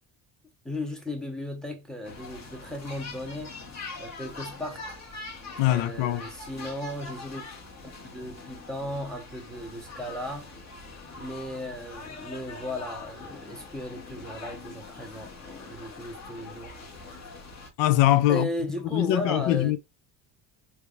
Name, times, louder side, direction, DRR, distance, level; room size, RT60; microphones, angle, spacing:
voice 1, 0.6-3.5 4.0-5.0 5.6-7.4 8.0-10.5 11.2-16.8 18.3-19.7, left 1 dB, ahead, 0.8 m, -36 dB
sound 1, 2.0-17.7, left 3 dB, 35° left, 1.2 m, -43 dB
voice 2, 5.6-6.2 17.8-18.5 18.9-19.8, left 14 dB, 70° left, 0.6 m, -22 dB
3.4 x 3.0 x 2.3 m
cardioid pair, 115°, 46 cm